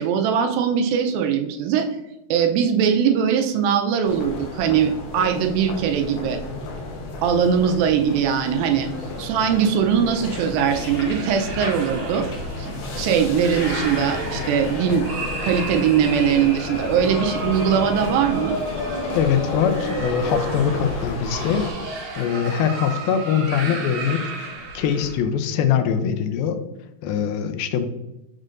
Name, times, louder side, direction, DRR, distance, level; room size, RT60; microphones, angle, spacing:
voice 1, 0.0-1.9 2.3-6.4 7.2-8.9 9.2-12.3 12.6-12.7 13.0-15.1 15.4-18.5, right 7 dB, 80° right, 4 dB, 2.4 m, -21 dB
sound 1, 4.0-21.7, left 3 dB, 70° left, 1.9 m, -32 dB
sound 2, 8.7-25.2, right 2 dB, 55° right, 2.3 m, -33 dB
sound 3, 10.7-14.9 15.3-15.5, left 3 dB, 50° left, 1.9 m, -38 dB
voice 2, 19.1-21.6 22.2-26.6 27.0-27.9, left 8 dB, 85° left, 8 dB, 2.4 m, -23 dB
6.4 x 6.4 x 2.5 m, 0.98 s
omnidirectional pair, 4.2 m